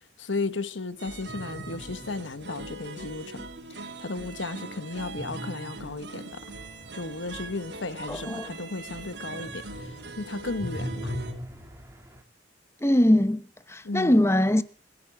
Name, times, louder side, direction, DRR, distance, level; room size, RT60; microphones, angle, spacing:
voice 1, 0.2-3.4 3.8-6.4 6.9-11.1 13.8-14.2, left 3 dB, 90° left, 1.2 m, -34 dB
sound 1, 1.0-11.3, right 3 dB, 70° right, 3.5 m, -41 dB
sound 2, 1.3-2.9 5.2-9.0 9.3-12.2, equal, 15° right, 2.5 m, -40 dB
voice 2, 8.1-8.5 12.8-14.6, left 1 dB, 15° left, 1.0 m, -22 dB
27.0 x 11.0 x 4.8 m
head